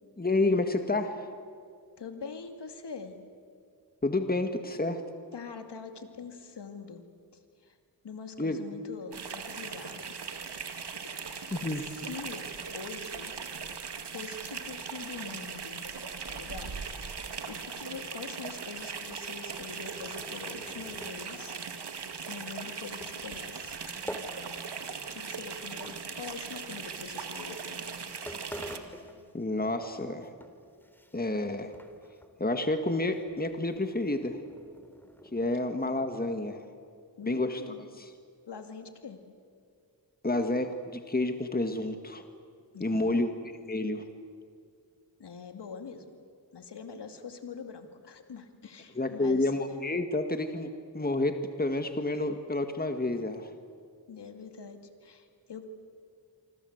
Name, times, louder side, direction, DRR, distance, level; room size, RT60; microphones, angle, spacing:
voice 1, 0.2-1.3 4.0-5.0 8.4-8.6 11.5-11.8 29.3-30.3 31.1-31.7 32.4-34.4 35.3-36.7 37.3-38.1 40.2-42.2 42.8-44.1 49.0-50.7 50.9-53.5, left 2 dB, 20° left, 7 dB, 2.0 m, -29 dB
voice 2, 2.0-3.2 5.3-7.0 7.3-7.8 8.0-10.3 11.0-12.5 12.7-13.4 14.1-15.9 16.3-16.8 17.1-21.6 22.3-23.9 25.1-27.9 37.2-37.9 38.5-39.2 42.7-43.2 45.2-46.0 46.5-49.5 54.1-55.7, left 5 dB, 85° left, 7 dB, 2.5 m, -44 dB
sound 1, 9.1-28.8, right 5 dB, 80° right, 2.3 m, -39 dB
sound 2, 19.0-25.0 25.2-26.7 27.4-27.6 28.0-28.1 28.3-29.9 30.2-31.5 31.7-32.3 32.6-32.7 33.1-35.6, equal, 5° left, 3.5 m, -47 dB
27.0 x 25.0 x 8.1 m, 2.3 s
cardioid pair, 50°, 40 cm